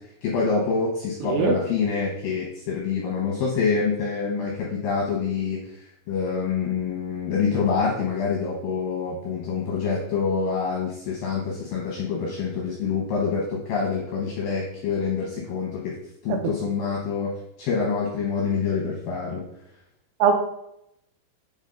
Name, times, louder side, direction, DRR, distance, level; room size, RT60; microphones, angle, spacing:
voice 1, 0.2-5.6 6.1-15.9 16.2-17.3 17.6-19.4, left 5 dB, 75° left, -2 dB, 2.1 m, -26 dB
voice 2, 1.2-1.6 16.3-16.5 20.2-20.3, right 6 dB, 90° right, 4 dB, 3.3 m, -21 dB
8.2 x 3.7 x 3.7 m, 0.78 s
omnidirectional pair, 5.3 m